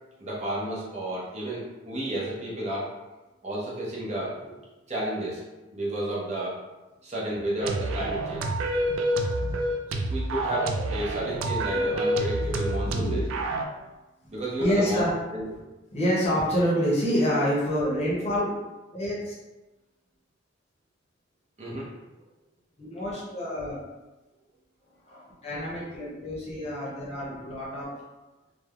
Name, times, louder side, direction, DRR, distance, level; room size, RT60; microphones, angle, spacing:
voice 1, 0.2-2.9 3.4-4.5 4.9-5.4 5.7-6.6 7.0-8.5 9.9-13.2 14.3-15.0 15.3-15.4 21.6-21.9, right 1 dB, 35° right, -6 dB, 0.6 m, -32 dB
sound 1, 7.6-13.7, right 1 dB, 85° right, 0.3 m, -28 dB
voice 2, 12.8-13.3 14.2-14.3 14.6-15.1 15.4-15.5 15.9-18.5 18.9-19.3 22.8-23.8 25.1-27.9, equal, 35° left, -6 dB, 0.7 m, -27 dB
3.1 x 2.0 x 2.3 m, 1.1 s
head